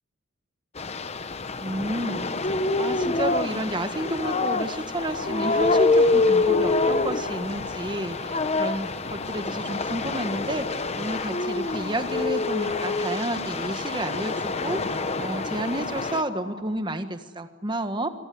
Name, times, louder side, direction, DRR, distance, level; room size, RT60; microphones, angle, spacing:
sound 1, 0.8-16.2, left 3 dB, 30° left, 0.9 m, -26 dB
voice 1, 1.6-2.3 2.8-18.1, right 1 dB, 20° right, 8 dB, 1.5 m, -31 dB
sound 2, 4.9-16.6, left 3 dB, 70° left, 5.4 m, -41 dB
25.5 x 19.0 x 9.4 m, 1.3 s
head